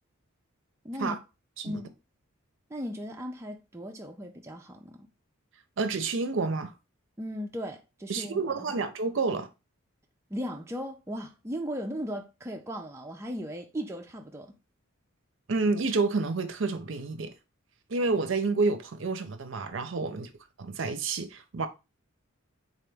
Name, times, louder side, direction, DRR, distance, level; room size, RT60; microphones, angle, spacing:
voice 1, 0.8-1.2 1.6-1.9 2.7-5.1 7.2-8.8 10.3-14.5 20.0-20.2, equal, 15° right, 0.3 m, -37 dB
voice 2, 5.8-6.7 8.1-9.5 15.5-17.3 17.9-20.3 20.6-21.7, right 3 dB, 60° right, 0.5 m, -29 dB
3.8 x 2.9 x 3.4 m
head